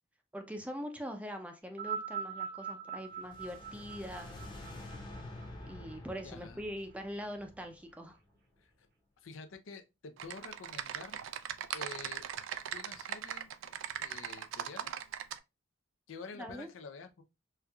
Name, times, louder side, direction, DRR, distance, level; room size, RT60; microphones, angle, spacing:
voice 1, 0.3-4.4 5.7-8.2 16.3-16.7, equal, 5° right, 0.5 m, -42 dB
sound 1, 1.7-6.2 7.1-7.2, right 7 dB, 55° right, 0.7 m, -42 dB
sound 2, 3.1-8.2, left 1 dB, 25° left, 0.8 m, -48 dB
voice 2, 6.2-6.6 8.6-8.7 9.2-11.2 11.7-12.2 12.7-13.5 14.0-15.0 16.1-17.2, left 4 dB, 80° left, 0.5 m, -48 dB
Typing, 10.2-15.4, right 9 dB, 70° right, 0.3 m, -40 dB
4.3 x 2.4 x 2.3 m
head